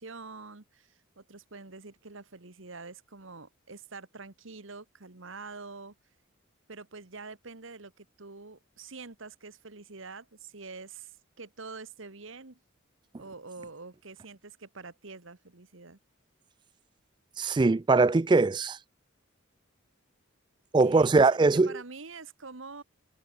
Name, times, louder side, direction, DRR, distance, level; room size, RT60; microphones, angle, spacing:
voice 1, 0.0-5.9 6.7-12.6 13.2-16.0 20.8-22.8, right 4 dB, 70° right, 1.5 m, -45 dB
voice 2, 17.4-18.8 20.7-21.8, right 3 dB, 20° right, 0.3 m, -22 dB
head